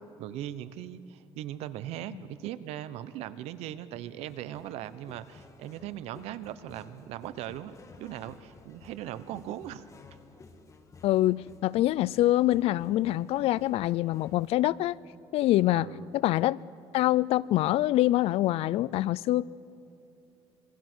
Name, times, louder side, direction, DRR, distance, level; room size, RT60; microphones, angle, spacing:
voice 1, 0.2-9.9 15.7-16.1, right 12 dB, 85° right, 0.9 m, -39 dB
sound 1, 4.2-14.5, left 4 dB, 30° left, 2.0 m, -54 dB
voice 2, 11.0-14.9 15.3-15.9 16.1-16.6 16.9-19.4, left 15 dB, 70° left, 0.5 m, -25 dB
27.0 x 22.5 x 6.3 m
cardioid pair, 130°, 10 cm